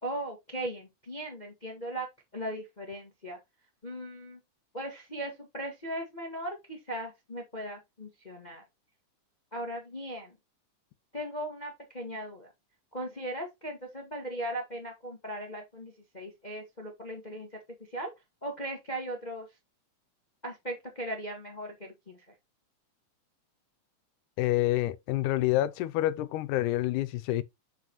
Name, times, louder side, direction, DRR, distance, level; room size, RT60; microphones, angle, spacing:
voice 1, 0.0-2.1 2.3-3.4 3.8-4.4 4.7-8.6 9.5-10.4 11.1-12.5 12.9-17.5 17.9-18.1 18.4-19.5 20.4-22.2, right 1 dB, 25° left, 0.9 m, -38 dB
voice 2, 24.4-27.4, left 15 dB, 85° left, 2.2 m, -27 dB
7.6 x 5.5 x 3.0 m
omnidirectional pair, 3.5 m